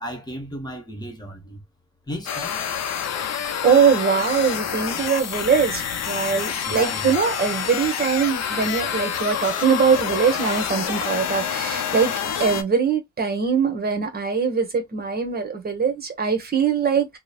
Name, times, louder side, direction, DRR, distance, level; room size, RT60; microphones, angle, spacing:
voice 1, 0.0-1.6 2.1-2.6 6.6-7.2, equal, 15° left, 1.1 m, -34 dB
sound 1, 2.3-12.6, left 8 dB, 60° left, 0.6 m, -27 dB
voice 2, 3.6-12.1 12.4-17.2, right 6 dB, 30° right, 1.1 m, -22 dB
3.0 x 2.1 x 2.3 m
cardioid pair, 90°, 30 cm